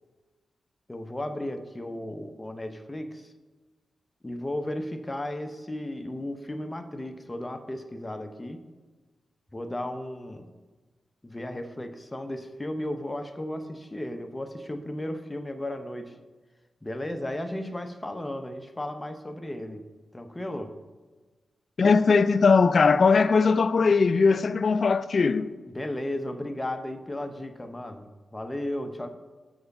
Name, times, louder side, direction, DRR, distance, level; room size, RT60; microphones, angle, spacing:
voice 1, 0.9-3.3 4.2-8.6 9.5-10.5 11.2-16.2 16.8-19.9 20.1-20.7 25.7-29.1, left 1 dB, 20° left, 0.8 m, -35 dB
voice 2, 21.8-25.5, left 4 dB, 60° left, 0.3 m, -20 dB
6.3 x 4.8 x 6.5 m
cardioid pair, 55°, 0 cm